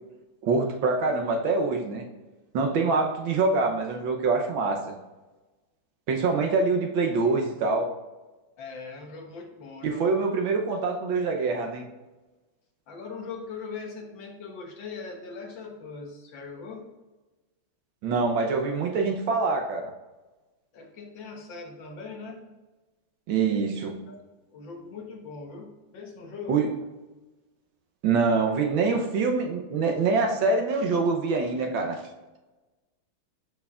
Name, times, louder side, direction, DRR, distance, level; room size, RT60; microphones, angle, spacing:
voice 1, 0.4-2.0 2.5-4.9 6.1-7.9 9.8-11.8 18.0-19.9 23.3-24.0 26.5-26.7 28.0-32.0, right 4 dB, 70° right, 3 dB, 1.5 m, -25 dB
voice 2, 8.6-10.0 12.9-16.9 20.7-22.5 24.1-24.2 24.5-26.6, left 4 dB, 65° left, 2 dB, 1.6 m, -40 dB
12.5 x 4.6 x 2.4 m, 1.1 s
omnidirectional pair, 2.3 m